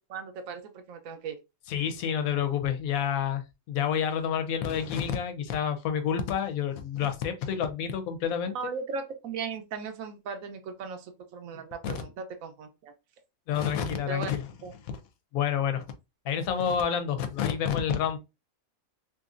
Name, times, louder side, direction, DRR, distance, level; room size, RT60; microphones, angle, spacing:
voice 1, 0.1-1.4 8.5-12.9 14.1-14.3 14.6-14.7, right 5 dB, 75° right, 1.0 m, -37 dB
voice 2, 1.7-8.6 11.8-12.0 13.5-14.4 15.3-15.8 16.2-18.2, left 8 dB, 85° left, 1.0 m, -29 dB
2.9 x 2.6 x 2.4 m
omnidirectional pair, 1.5 m